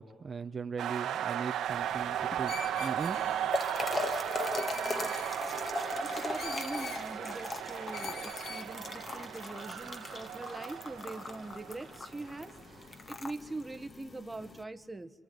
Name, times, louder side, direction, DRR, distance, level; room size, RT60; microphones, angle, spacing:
voice 1, 0.0-2.5 2.8-3.2 3.9-4.1, right 5 dB, 40° right, 6 dB, 0.9 m, -39 dB
sound 1, 0.8-12.5, right 10 dB, 80° right, 1.8 m, -36 dB
sound 2, 1.7-14.6, left 3 dB, 40° left, 2.0 m, -40 dB
Screech, 2.4-3.5 4.5-5.4 6.4-7.0 7.9-8.7, left 6 dB, 70° left, 1.6 m, -44 dB
voice 2, 4.7-5.1 5.7-12.5 13.1-15.1, right 2 dB, 15° right, 10 dB, 1.3 m, -43 dB
27.5 x 23.0 x 9.4 m, 1.3 s
cardioid pair, 90°, 0 cm